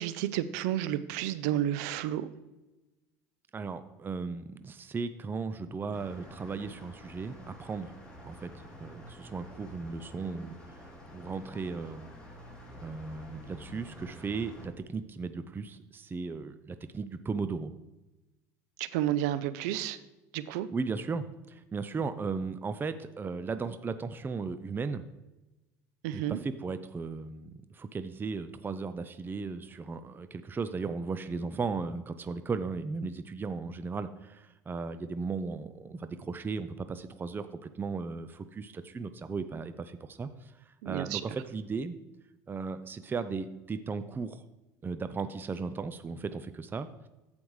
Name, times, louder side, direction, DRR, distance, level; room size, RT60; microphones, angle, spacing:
voice 1, 0.0-2.3 18.8-20.0 20.3-20.7 26.0-26.4 40.8-41.2, right 12 dB, 75° right, 14 dB, 0.5 m, -31 dB
voice 2, 3.5-8.0 8.2-10.8 11.1-12.1 12.8-17.7 20.7-25.0 26.1-40.5 40.9-42.0 42.5-44.4 44.8-47.1, right 4 dB, 25° right, 11 dB, 0.5 m, -36 dB
sound 1, 5.9-14.7, equal, 10° left, 3.2 m, -49 dB
14.5 x 5.2 x 3.2 m, 1.0 s
hypercardioid pair, 80°, 9 cm